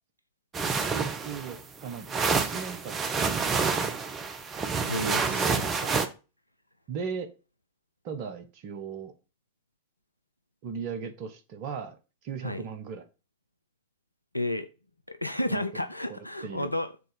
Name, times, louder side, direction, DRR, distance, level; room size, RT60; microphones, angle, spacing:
sound 1, 0.5-6.1, right 5 dB, 25° right, 1.0 m, -28 dB
voice 1, 0.8-3.8 4.9-5.5 5.8-5.9 6.9-7.3 8.0-9.1 10.6-12.0 12.2-13.0 15.5-15.8 16.1-16.7, right 6 dB, 45° right, 1.3 m, -38 dB
voice 2, 4.9-5.6 12.4-12.6 14.3-14.7 15.1-17.1, left 1 dB, 85° left, 0.4 m, -32 dB
6.7 x 4.0 x 5.3 m
figure-of-eight pair, 90°, 0 cm